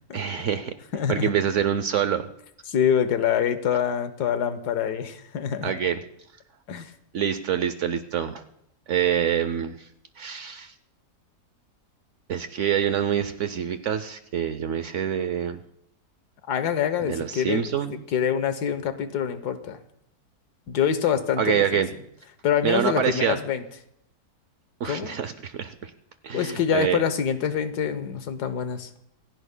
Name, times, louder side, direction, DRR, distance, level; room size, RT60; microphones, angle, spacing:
voice 1, 0.1-0.7 1.1-2.2 5.6-6.0 7.1-8.4 8.9-9.9 10.2-10.7 12.3-15.6 17.1-18.0 21.4-21.9 22.6-23.4 24.8-25.9 26.2-27.0, right 8 dB, 60° right, 10 dB, 0.8 m, -26 dB
voice 2, 0.9-1.3 2.7-5.7 6.7-6.9 16.5-17.7 18.1-19.8 20.7-21.8 22.4-23.6 24.8-25.1 26.3-28.9, left 8 dB, 80° left, 11 dB, 1.5 m, -25 dB
27.0 x 16.0 x 2.2 m, 0.78 s
omnidirectional pair, 1.7 m